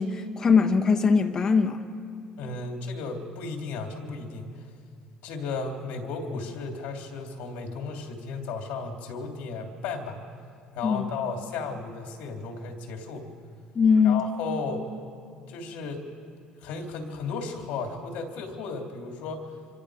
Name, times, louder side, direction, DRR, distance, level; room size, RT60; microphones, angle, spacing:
voice 1, 0.0-1.8 10.8-11.1 13.7-14.2, left 5 dB, 25° left, 1.1 m, -21 dB
voice 2, 2.4-4.7 5.2-10.2 10.7-13.2 14.0-14.9 15.5-16.1 16.6-19.6, left 4 dB, 75° left, 3.1 m, -34 dB
26.0 x 24.5 x 5.0 m
cardioid pair, 175°, 3 cm